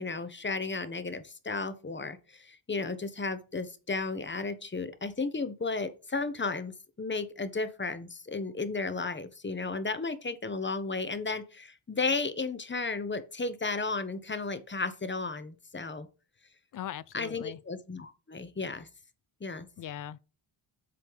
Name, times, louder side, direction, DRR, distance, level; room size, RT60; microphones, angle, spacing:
voice 1, 0.0-16.1 17.1-18.9 19.4-19.7, left 3 dB, 25° left, 0.8 m, -34 dB
voice 2, 16.7-17.6 19.8-20.2, left 11 dB, 45° left, 0.4 m, -40 dB
7.7 x 3.2 x 5.3 m
cardioid pair, 85°, 50 cm